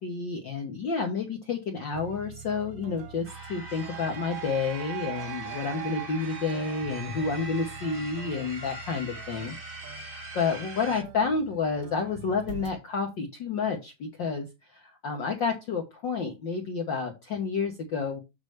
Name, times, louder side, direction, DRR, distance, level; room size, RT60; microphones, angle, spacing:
voice 1, 0.0-9.5 10.3-14.5 14.7-18.2, left 5 dB, 80° left, 2 dB, 1.0 m, -30 dB
sound 1, 1.9-12.7, right 6 dB, 60° right, 1.7 m, -46 dB
sound 2, 3.2-11.0, right 1 dB, 45° right, 0.7 m, -43 dB
sound 3, 3.3-8.4, right 15 dB, 80° right, 1.9 m, -41 dB
8.2 x 3.2 x 6.4 m, 0.25 s
omnidirectional pair, 3.7 m